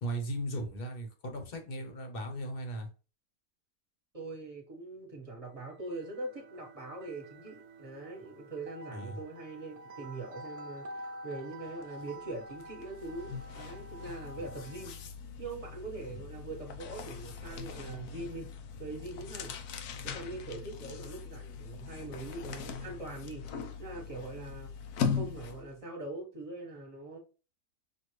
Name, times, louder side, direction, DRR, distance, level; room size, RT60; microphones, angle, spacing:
voice 1, 0.0-2.9 8.9-9.2 14.4-14.5 16.1-16.2, right 1 dB, 45° left, 1.0 m, -37 dB
voice 2, 4.1-10.9 11.2-15.0 15.4-18.5 18.8-19.5 20.0-23.4 23.8-24.7 25.1-27.2, right 2 dB, 25° right, 1.4 m, -42 dB
sound 1, 5.6-15.1, right 1 dB, 80° right, 1.1 m, -48 dB
sound 2, 11.8-12.0 12.3-25.8, left 6 dB, 85° left, 1.2 m, -40 dB
6.3 x 2.5 x 3.1 m
omnidirectional pair, 1.6 m